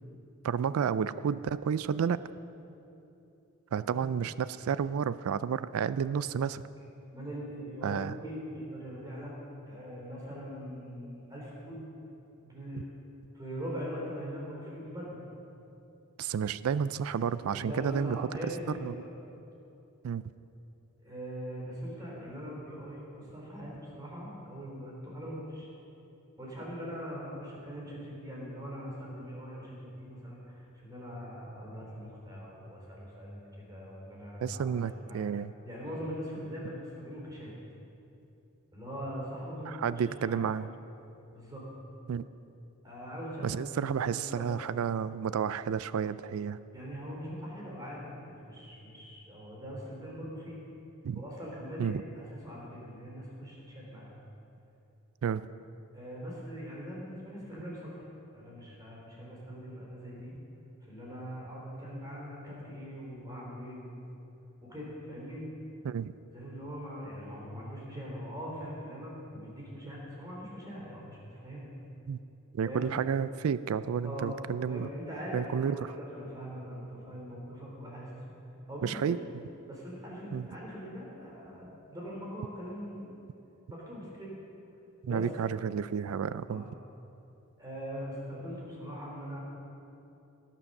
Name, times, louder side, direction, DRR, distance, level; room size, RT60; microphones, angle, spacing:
voice 1, 0.4-2.2 3.7-6.6 7.8-8.2 16.2-18.3 18.8-18.9 20.0-20.2 34.4-35.5 39.7-40.7 42.1-42.2 43.4-46.6 51.0-51.2 51.8-52.0 55.2-55.5 65.8-66.1 72.1-72.2 72.5-74.9 75.3-75.9 78.8-79.2 80.3-80.5 85.0-86.7, right 7 dB, 85° right, 16 dB, 0.3 m, -31 dB
voice 2, 7.1-9.3 9.7-11.9 12.4-12.8 13.3-15.2 17.5-19.1 21.0-25.7 26.4-34.7 35.0-35.2 35.6-37.5 38.7-40.4 41.3-41.7 42.8-44.5 46.7-50.6 51.1-54.1 55.9-58.0 58.3-60.3 60.8-64.0 64.6-65.5 66.3-71.7 72.6-72.9 74.0-74.4 74.7-78.3 78.7-79.2 79.7-83.1 83.7-84.3 85.0-85.2 86.5-86.7 87.6-89.4, equal, 20° right, -4 dB, 3.3 m, -42 dB
17.5 x 7.4 x 6.5 m, 2.9 s
head